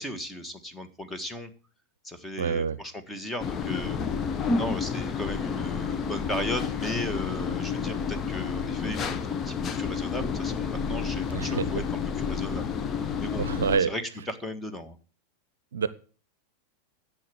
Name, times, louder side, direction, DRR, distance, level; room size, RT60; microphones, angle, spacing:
voice 1, 0.0-1.5 2.0-4.0 4.5-9.2 9.4-13.4 13.8-15.0, left 1 dB, 5° left, 1.7 m, -36 dB
voice 2, 2.4-2.8 11.3-11.7 13.4-13.9 15.7-15.9, right 6 dB, 65° right, 0.7 m, -26 dB
sound 1, 3.4-13.8, left 6 dB, 25° left, 1.0 m, -30 dB
11.0 x 7.5 x 7.9 m
figure-of-eight pair, 90°, 0 cm